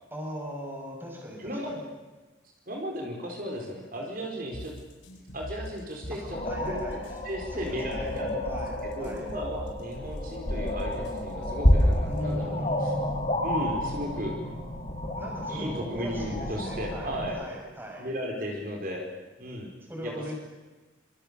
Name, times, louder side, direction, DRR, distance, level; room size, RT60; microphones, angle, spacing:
voice 1, 0.1-1.9 6.1-7.2 7.5-8.2 8.4-9.3 12.0-13.2 15.2-18.1 19.9-20.4, equal, 10° right, 0 dB, 6.3 m, -38 dB
voice 2, 1.4-1.8 2.7-4.8 5.3-6.4 6.7-6.8 7.2-8.4 8.8-12.9 13.4-14.4 15.5-17.4 18.0-19.1 19.4-19.7 20.0-20.4, equal, 45° right, 1 dB, 4.5 m, -35 dB
sound 1, 4.5-12.5, equal, 75° left, 5.4 m, -43 dB
sound 2, 6.3-17.3, equal, 35° left, 6.8 m, -29 dB
26.0 x 25.5 x 6.9 m, 1.2 s
head